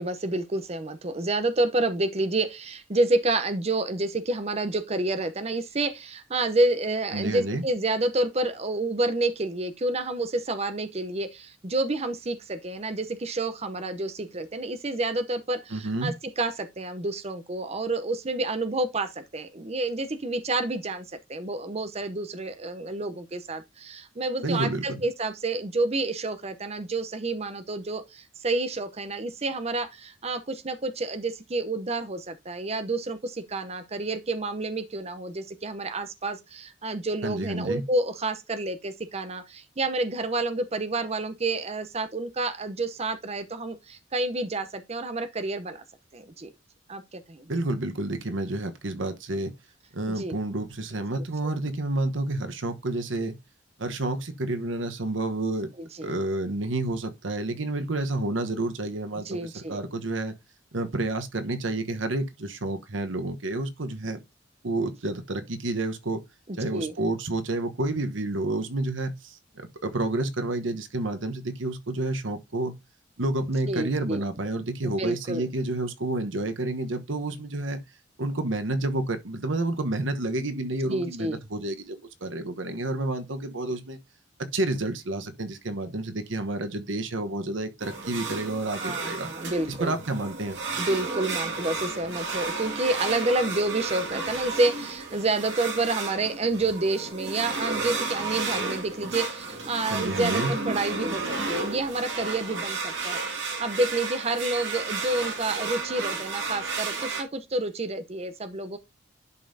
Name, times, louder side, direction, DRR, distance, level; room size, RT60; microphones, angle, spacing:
voice 1, 0.0-45.8 46.1-46.5 46.9-47.5 50.1-50.3 55.8-56.1 59.2-59.8 66.7-66.9 73.7-74.2 74.8-75.4 80.9-81.4 88.8-90.0 90.8-108.8, right 2 dB, 35° right, 0.7 m, -29 dB
voice 2, 7.1-7.6 15.7-16.1 24.4-25.0 37.2-37.8 47.5-49.5 49.9-53.4 53.8-55.7 56.0-60.3 60.7-64.2 64.6-66.2 66.6-72.7 73.2-77.8 78.2-84.0 84.5-89.3 89.7-90.6 99.9-100.5, right 2 dB, 85° right, 1.1 m, -29 dB
sound 1, 87.8-107.2, right 3 dB, 70° right, 2.1 m, -32 dB
11.0 x 5.3 x 2.7 m
head